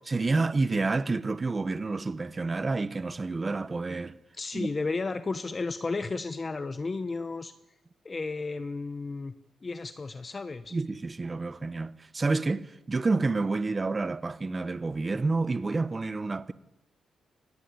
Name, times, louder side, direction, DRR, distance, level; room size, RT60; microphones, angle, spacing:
voice 1, 0.1-4.2 4.5-4.7 10.7-16.5, right 3 dB, 20° right, 1.0 m, -29 dB
voice 2, 4.4-7.5 8.0-9.3 9.6-10.8, left 3 dB, 25° left, 0.9 m, -33 dB
24.0 x 18.0 x 9.8 m
cardioid pair, 140°, 0 cm